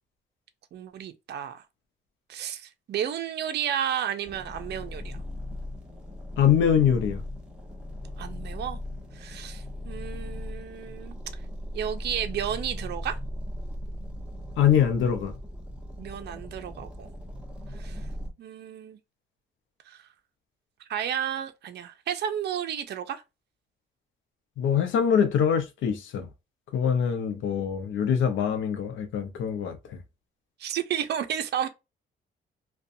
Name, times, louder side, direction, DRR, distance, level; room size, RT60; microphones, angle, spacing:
voice 1, 0.7-1.6 2.3-5.2 8.2-8.8 9.1-11.1 11.7-13.2 16.0-17.1 17.8-18.0 18.4-19.0 19.9-20.0 20.9-23.2 30.6-31.7, right 9 dB, 60° right, 0.5 m, -32 dB
sound 1, 4.2-18.3, left 1 dB, 5° right, 1.0 m, -38 dB
voice 2, 6.4-7.2 14.6-15.4 24.6-26.3 26.7-30.0, left 8 dB, 75° left, 0.6 m, -24 dB
2.4 x 2.2 x 2.6 m
cardioid pair, 90°, 20 cm